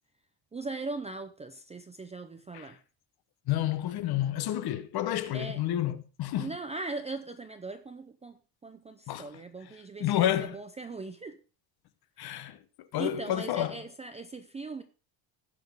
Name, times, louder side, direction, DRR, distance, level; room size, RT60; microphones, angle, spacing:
voice 1, 0.5-2.8 5.3-5.6 6.4-8.4 8.6-11.4 13.0-14.8, right 3 dB, 15° right, 0.4 m, -39 dB
voice 2, 3.5-6.5 9.1-9.3 10.0-10.6 12.2-12.6 12.9-13.8, left 12 dB, 50° left, 0.9 m, -30 dB
17.0 x 5.9 x 3.5 m
cardioid pair, 170°, 48 cm